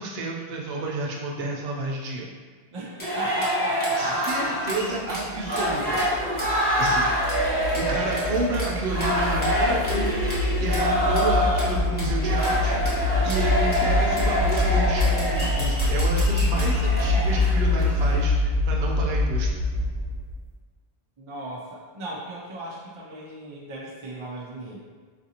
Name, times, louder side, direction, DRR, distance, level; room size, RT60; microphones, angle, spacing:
voice 1, 0.0-2.3 4.0-7.2 7.5-10.1 10.4-19.5, right 3 dB, 80° right, -2 dB, 0.8 m, -31 dB
voice 2, 2.7-4.2 21.2-24.8, right 1 dB, 45° right, -4 dB, 0.4 m, -36 dB
sound 1, 3.0-18.2, equal, 10° left, 0.8 m, -26 dB
sound 2, 5.1-20.4, left 2 dB, 45° left, 0.3 m, -25 dB
3.9 x 2.5 x 2.8 m, 1.5 s
omnidirectional pair, 1.1 m